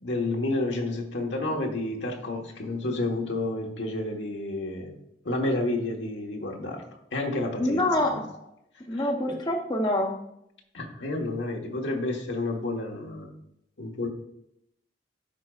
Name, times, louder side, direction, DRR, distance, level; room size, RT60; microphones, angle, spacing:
voice 1, 0.0-5.0 5.2-6.8 7.1-8.2 8.9-9.4 10.7-13.3 13.8-14.1, left 2 dB, 90° left, 1 dB, 1.3 m, -30 dB
voice 2, 7.6-8.2 8.9-10.2, left 1 dB, 25° left, 2 dB, 0.7 m, -25 dB
12.5 x 4.9 x 2.4 m, 0.76 s
head